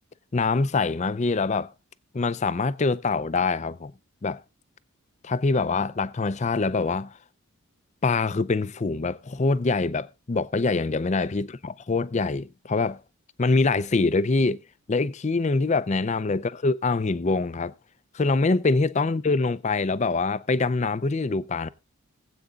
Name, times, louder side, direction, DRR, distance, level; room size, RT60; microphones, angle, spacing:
voice 1, 0.3-1.7 2.1-3.9 4.2-4.4 5.2-7.2 8.0-13.0 13.4-14.6 14.9-17.7 18.1-21.7, left 3 dB, 30° left, 0.5 m, -24 dB
20.5 x 8.2 x 2.4 m
head